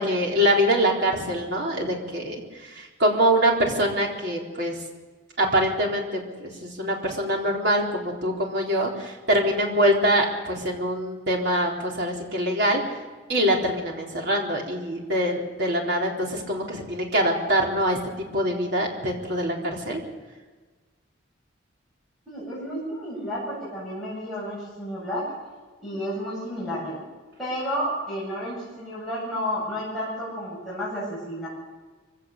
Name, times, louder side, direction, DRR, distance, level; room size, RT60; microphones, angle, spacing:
voice 1, 0.0-4.7 5.4-12.8 13.3-18.0 18.3-20.0, equal, 55° right, -1 dB, 4.1 m, -24 dB
voice 2, 22.3-25.3 25.8-27.0 27.4-31.5, equal, ahead, -8 dB, 8.0 m, -31 dB
24.0 x 17.0 x 6.8 m, 1.4 s
head